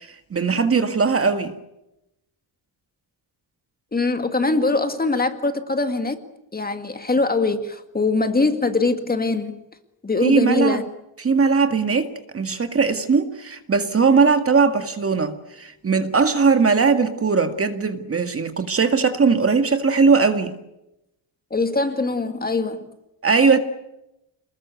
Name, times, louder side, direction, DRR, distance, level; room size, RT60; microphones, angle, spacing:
voice 1, 0.0-1.5 10.2-10.8 11.2-20.6 23.2-23.6, right 5 dB, 30° right, 2.0 m, -19 dB
voice 2, 3.9-6.2 6.5-9.6 10.0-10.9 21.5-22.9, left 3 dB, 20° left, 2.0 m, -22 dB
28.5 x 20.5 x 8.2 m
wide cardioid pair, 165°, 47 cm